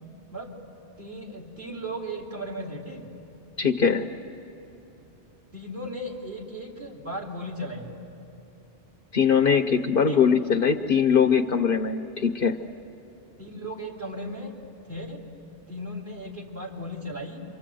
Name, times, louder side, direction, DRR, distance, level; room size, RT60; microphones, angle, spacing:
voice 1, 1.0-3.1 5.5-8.0 10.1-10.2 13.4-14.5 14.8-15.2 15.7-17.4, equal, 45° right, -2 dB, 3.6 m, -36 dB
voice 2, 3.6-4.1 9.1-12.6, left 6 dB, 55° left, 8 dB, 1.0 m, -21 dB
28.5 x 25.0 x 7.8 m, 2.9 s
omnidirectional pair, 1.2 m